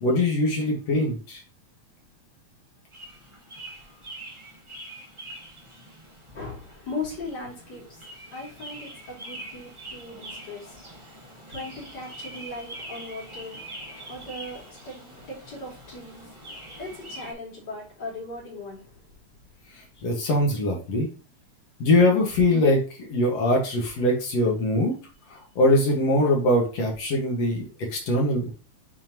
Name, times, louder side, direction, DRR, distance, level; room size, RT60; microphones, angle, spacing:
voice 1, 0.0-1.4 20.0-21.1 21.8-24.9 25.3-28.5, left 1 dB, 60° left, 0 dB, 2.7 m, -22 dB
sound 1, 2.9-17.3, right 1 dB, 20° right, 0.8 m, -43 dB
voice 2, 6.3-8.0 8.3-13.6 14.1-15.0 15.3-16.4 16.8-18.8, left 2 dB, 35° left, -4 dB, 3.2 m, -38 dB
7.4 x 4.4 x 2.9 m, 0.33 s
omnidirectional pair, 3.4 m